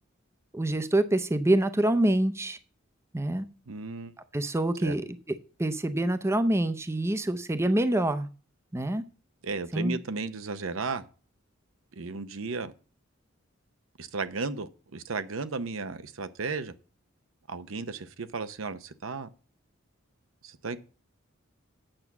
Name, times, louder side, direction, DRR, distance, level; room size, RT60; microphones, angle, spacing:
voice 1, 0.5-2.6 3.1-3.5 4.3-5.1 5.6-8.3 8.7-9.0 9.7-10.0, right 1 dB, 15° right, 0.6 m, -26 dB
voice 2, 3.7-4.1 4.8-4.9 9.4-11.1 12.0-12.7 14.0-16.7 17.5-19.3 20.4-20.8, right 4 dB, 80° right, 0.8 m, -34 dB
8.9 x 6.0 x 7.1 m
head